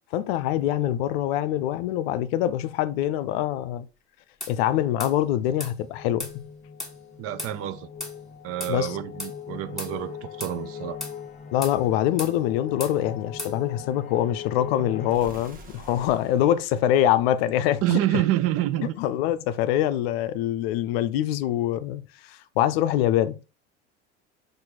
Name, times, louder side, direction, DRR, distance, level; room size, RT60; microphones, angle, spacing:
voice 1, 0.1-3.9 4.5-6.5 8.7-9.0 11.5-18.0 19.0-22.0 22.3-23.4, left 12 dB, 65° left, 0.5 m, -24 dB
sound 1, 4.4-4.6 5.0-5.2 5.6-5.7 6.2-6.4 6.8-7.0 7.4-7.5 8.0-8.2 8.6-8.8 9.2-9.3 9.8-9.9 10.4-10.6 11.0-11.2 11.6-11.8 12.2-12.4 12.8-13.0 13.4-13.6, left 2 dB, ahead, 1.4 m, -35 dB
sound 2, 5.3-15.2, left 7 dB, 25° left, 0.6 m, -40 dB
voice 2, 7.2-7.9 8.4-11.0 17.8-19.0, right 14 dB, 45° right, 0.5 m, -27 dB
sound 3, 15.1-18.0, right 2 dB, 25° right, 1.1 m, -47 dB
4.4 x 2.7 x 3.8 m
hypercardioid pair, 75°, 33 cm